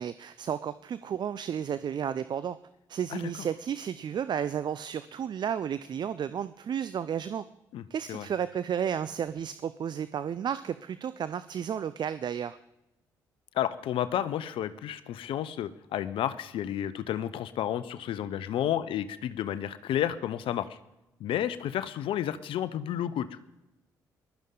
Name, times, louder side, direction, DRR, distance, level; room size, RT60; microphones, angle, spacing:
voice 1, 0.0-2.6 2.9-7.4 7.9-12.6, right 8 dB, 50° right, 14 dB, 0.5 m, -32 dB
voice 2, 7.7-8.3 13.5-20.8 21.2-23.4, left 11 dB, 65° left, 14 dB, 0.7 m, -31 dB
20.5 x 12.5 x 3.9 m, 0.92 s
hypercardioid pair, 45°, 10 cm